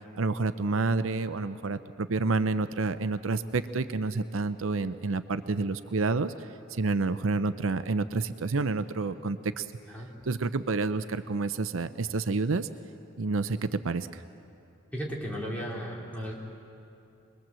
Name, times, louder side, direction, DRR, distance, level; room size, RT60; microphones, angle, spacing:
voice 1, 0.2-9.7 10.2-12.7 13.2-14.2, right 3 dB, 75° right, 12 dB, 0.6 m, -29 dB
voice 2, 14.9-16.3, equal, 10° left, -4 dB, 3.6 m, -35 dB
25.0 x 21.5 x 7.6 m, 2.7 s
head